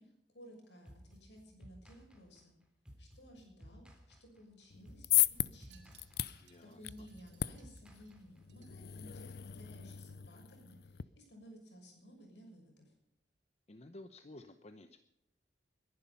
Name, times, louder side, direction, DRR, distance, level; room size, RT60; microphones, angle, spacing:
voice 1, 0.0-2.5 3.0-5.1 5.5-5.9 6.7-12.9, equal, 80° left, 1 dB, 6.7 m, -57 dB
sound 1, 0.9-8.7, equal, 5° right, 3.1 m, -57 dB
sound 2, 4.7-11.0, left 14 dB, 60° left, 0.5 m, -37 dB
Wind chime, 5.3-9.8 10.1-10.4 10.7-10.8, right 8 dB, 90° right, 3.0 m, -68 dB
voice 2, 6.4-7.1 13.7-15.0, left 2 dB, 40° left, 9 dB, 0.8 m, -54 dB
21.5 x 11.5 x 5.5 m, 0.84 s
head